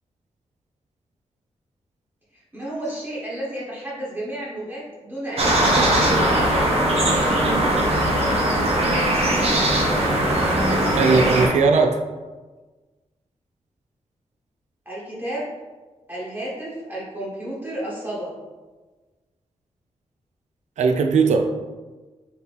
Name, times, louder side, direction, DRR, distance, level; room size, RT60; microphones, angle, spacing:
voice 1, 2.5-6.5 14.8-15.5 16.1-18.3, right 1 dB, 15° right, -7 dB, 1.3 m, -32 dB
sound 1, 5.4-11.5, right 1 dB, 60° right, 1.0 m, -20 dB
voice 2, 10.7-12.0 20.8-21.5, right 4 dB, 85° right, 5 dB, 0.4 m, -19 dB
4.1 x 2.9 x 3.5 m, 1.3 s
wide cardioid pair, 120°, 12 cm